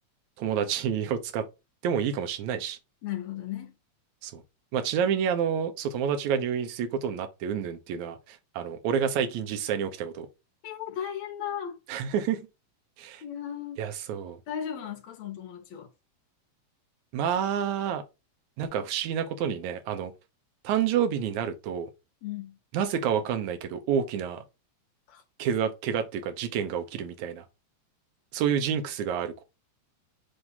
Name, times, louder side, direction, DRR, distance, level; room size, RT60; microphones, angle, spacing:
voice 1, 0.4-1.5 1.8-2.8 4.2-4.4 4.7-10.3 11.9-12.5 13.0-13.2 13.8-14.4 17.1-18.0 18.6-20.1 20.6-21.9 22.7-24.4 25.4-27.4 28.3-29.4, right 8 dB, 75° right, 2.2 m, -29 dB
voice 2, 3.0-3.7 10.6-11.8 13.2-13.8 14.5-15.9 22.2-22.6 25.1-25.2, left 10 dB, 65° left, 2.4 m, -36 dB
7.9 x 2.7 x 5.4 m
omnidirectional pair, 3.5 m